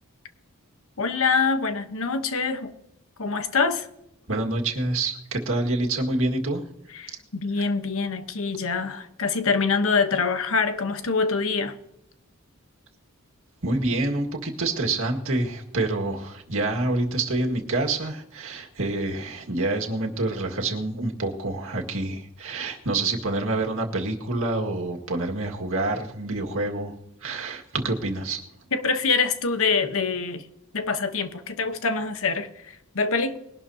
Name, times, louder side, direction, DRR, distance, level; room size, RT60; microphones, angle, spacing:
voice 1, 1.0-2.7 3.2-3.9 6.9-11.7 28.7-30.4 30.7-33.4, left 4 dB, 65° left, 1.1 m, -25 dB
voice 2, 4.3-6.6 13.6-26.9 27.2-28.4, right 2 dB, 65° right, 1.9 m, -27 dB
21.0 x 12.0 x 2.8 m
head